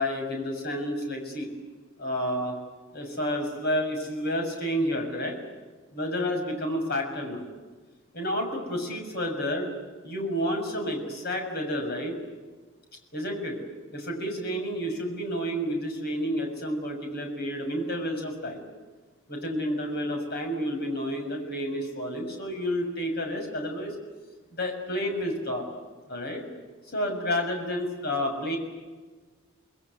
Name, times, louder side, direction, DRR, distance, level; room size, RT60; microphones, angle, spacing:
voice 1, 0.0-1.5 2.0-2.5 2.9-5.4 5.9-7.4 8.1-9.7 10.0-12.2 13.1-13.6 13.9-18.6 19.3-23.9 24.5-25.6 26.1-26.4 26.9-28.6, equal, 50° left, 3 dB, 6.7 m, -30 dB
28.5 x 21.0 x 9.7 m, 1.3 s
head